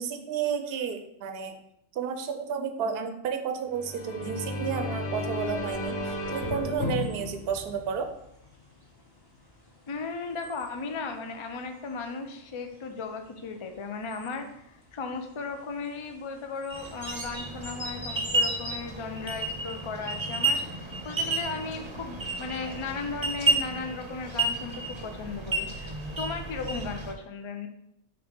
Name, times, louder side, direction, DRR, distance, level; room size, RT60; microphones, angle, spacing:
voice 1, 0.0-1.5 1.9-8.1, right 6 dB, 65° right, 6 dB, 0.8 m, -31 dB
sound 1, 3.7-8.5, left 2 dB, 85° left, 1.3 m, -34 dB
sound 2, 5.3-18.8, left 1 dB, 20° left, 1.0 m, -46 dB
voice 2, 9.9-25.9 26.2-27.7, left 4 dB, 40° left, 6 dB, 0.4 m, -36 dB
sound 3, 16.7-27.1, right 2 dB, 30° right, 0.7 m, -31 dB
6.2 x 3.1 x 5.2 m, 0.77 s
omnidirectional pair, 1.2 m